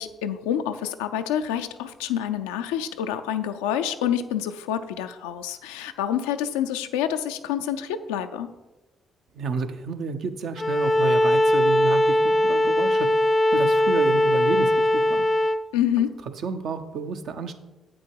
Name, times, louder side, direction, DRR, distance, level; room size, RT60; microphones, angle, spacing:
voice 1, 0.0-8.5 15.7-16.1, left 10 dB, 85° left, 8 dB, 0.4 m, -27 dB
voice 2, 9.4-13.1 13.5-15.2 16.4-17.6, right 5 dB, 65° right, 7 dB, 0.7 m, -30 dB
Bowed string instrument, 10.6-15.6, left 1 dB, 20° left, 0.4 m, -20 dB
8.3 x 6.2 x 4.7 m, 1.1 s
hypercardioid pair, 50°, 0 cm